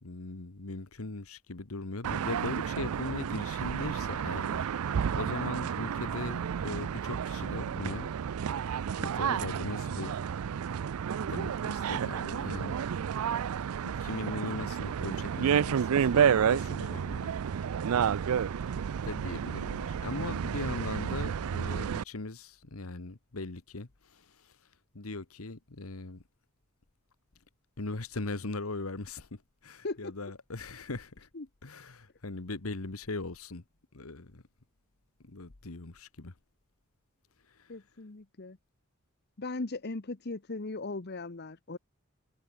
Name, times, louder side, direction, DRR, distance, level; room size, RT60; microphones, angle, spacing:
voice 1, 0.0-4.7 5.1-8.1 9.0-10.1 11.3-12.8 13.8-17.3 19.0-24.5 24.9-26.2 27.8-31.3 31.6-33.6 33.9-34.4 35.2-36.3 37.6-37.7, left 3 dB, 80° left, 1.4 m, -39 dB
sound 1, 2.0-22.0, right 7 dB, 80° right, 0.4 m, -31 dB
voice 2, 37.7-38.6 39.4-41.8, left 3 dB, 50° left, 1.0 m, -38 dB
head